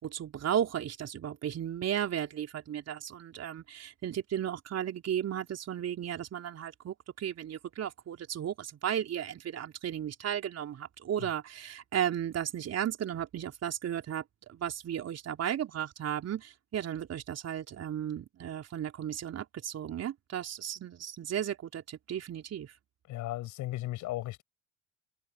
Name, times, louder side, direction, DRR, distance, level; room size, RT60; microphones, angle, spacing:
voice 1, 0.0-14.2 14.5-22.7, right 10 dB, 50° right, 3.8 m, -35 dB
voice 2, 23.1-24.4, left 16 dB, 65° left, 7.2 m, -36 dB
hypercardioid pair, 60°, 33 cm